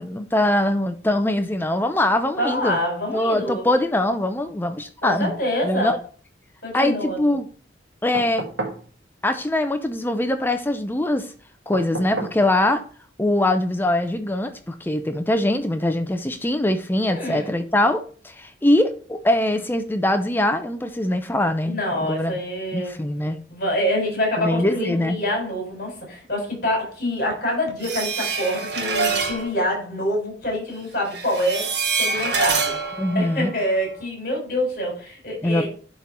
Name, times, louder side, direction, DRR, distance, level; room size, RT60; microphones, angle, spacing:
voice 1, 0.0-2.8 3.1-5.3 5.6-6.0 6.7-7.5 8.0-8.4 9.2-11.3 11.7-12.8 13.2-22.4 22.7-23.4 24.4-25.2 33.0-33.5 35.4-35.7, left 1 dB, 10° left, 8 dB, 0.5 m, -22 dB
voice 2, 2.4-3.7 5.0-5.9 6.6-7.3 17.0-17.5 21.6-23.0 23.5-31.7 32.0-32.8 33.1-35.7, left 1 dB, 50° left, 0 dB, 4.2 m, -26 dB
sound 1, 8.1-8.9 11.7-12.4 14.0-14.1, right 3 dB, 80° right, 1.6 m, -31 dB
sound 2, 27.8-29.5 31.1-34.0, right 4 dB, 60° right, 1.5 m, -25 dB
11.0 x 3.7 x 4.3 m, 0.42 s
head